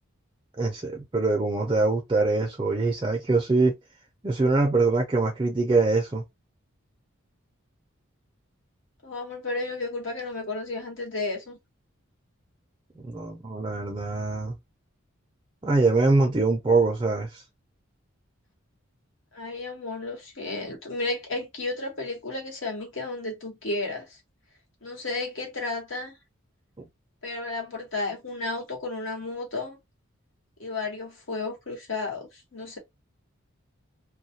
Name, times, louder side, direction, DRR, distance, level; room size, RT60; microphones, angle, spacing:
voice 1, 0.6-3.7 4.2-6.2 13.0-14.6 15.6-17.4, right 3 dB, 20° right, 0.4 m, -23 dB
voice 2, 9.0-11.6 19.3-24.2 24.8-26.1 27.2-29.8 30.6-32.8, left 3 dB, 65° left, 1.0 m, -33 dB
2.2 x 2.1 x 2.8 m
head